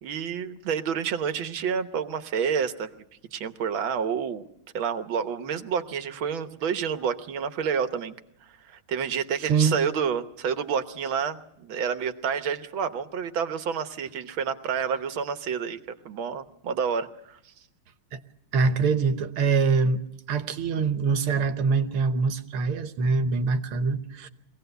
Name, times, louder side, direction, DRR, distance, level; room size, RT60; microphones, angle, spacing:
voice 1, 0.0-2.9 3.3-4.4 4.7-8.2 8.6-15.8 16.1-17.5, right 7 dB, 70° right, 1.8 m, -29 dB
voice 2, 18.5-20.0 20.3-24.3, right 4 dB, 85° right, 2.0 m, -24 dB
23.5 x 17.5 x 8.0 m
omnidirectional pair, 2.3 m